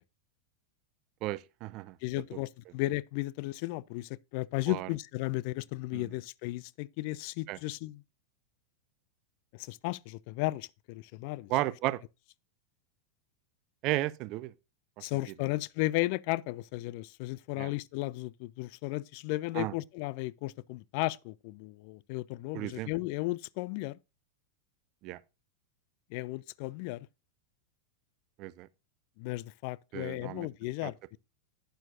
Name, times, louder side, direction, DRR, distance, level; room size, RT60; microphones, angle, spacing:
voice 1, 1.2-2.0 4.7-4.9 5.9-6.1 7.5-7.6 11.5-12.0 13.8-14.5 15.0-15.1 17.6-17.7 19.5-19.7 22.5-22.9 25.0-25.2 28.4-28.7 29.9-30.5 30.8-30.9, right 17 dB, 40° right, 0.6 m, -34 dB
voice 2, 2.0-8.0 9.5-11.5 15.0-24.0 26.1-27.1 29.2-31.2, left 19 dB, 45° left, 0.4 m, -35 dB
12.0 x 9.2 x 2.6 m
figure-of-eight pair, 90°, 0 cm